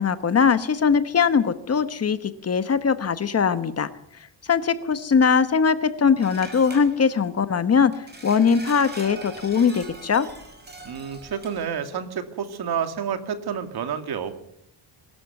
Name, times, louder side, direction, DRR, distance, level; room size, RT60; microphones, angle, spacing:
voice 1, 0.0-3.9 4.4-10.3, left 6 dB, 35° left, 13 dB, 1.1 m, -21 dB
sound 1, 6.2-7.2 7.9-11.6, right 2 dB, 20° right, 5.6 m, -41 dB
voice 2, 10.8-14.4, right 7 dB, 60° right, 9 dB, 2.4 m, -29 dB
22.5 x 13.0 x 9.3 m, 0.71 s
cardioid pair, 155°, 43 cm